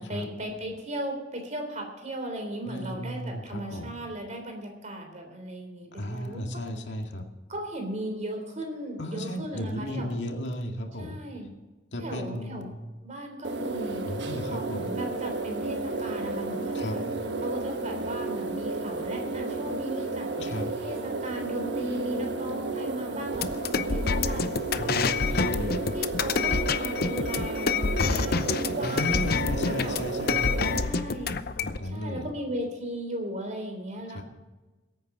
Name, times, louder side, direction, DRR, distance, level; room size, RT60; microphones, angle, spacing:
voice 1, 0.0-6.6 7.5-10.1 11.0-11.5 12.0-12.7 13.0-17.0 17.4-20.3 20.8-25.0 25.9-30.0 30.8-31.5 31.9-34.2, right 1 dB, 40° right, 3 dB, 3.6 m, -37 dB
voice 2, 2.7-3.9 5.9-7.3 9.0-11.2 11.9-12.7 14.0-14.9 16.7-17.0 20.4-20.7 24.8-25.9 28.8-30.8 31.6-32.3 34.1-34.2, equal, 80° left, 3 dB, 2.1 m, -34 dB
sound 1, 13.4-30.8, right 2 dB, 70° right, 1.3 m, -32 dB
sound 2, 23.3-31.8, left 5 dB, 60° left, 0.7 m, -27 dB
22.0 x 9.1 x 3.9 m, 1.2 s
head